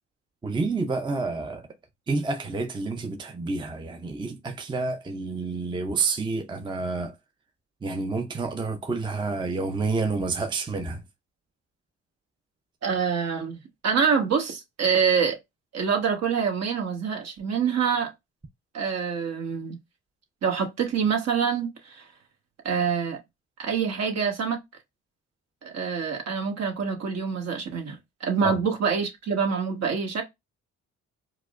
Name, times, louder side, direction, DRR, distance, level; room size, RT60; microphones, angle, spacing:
voice 1, 0.4-1.7 2.1-7.1 7.8-11.0 28.4-28.6, right 3 dB, 15° right, 0.5 m, -29 dB
voice 2, 12.8-15.4 15.7-18.1 18.7-19.8 20.4-22.0 22.6-23.2 23.6-24.6 25.6-30.2, right 6 dB, 60° right, 1.2 m, -26 dB
4.6 x 2.1 x 2.4 m
cardioid pair, 90°, 30 cm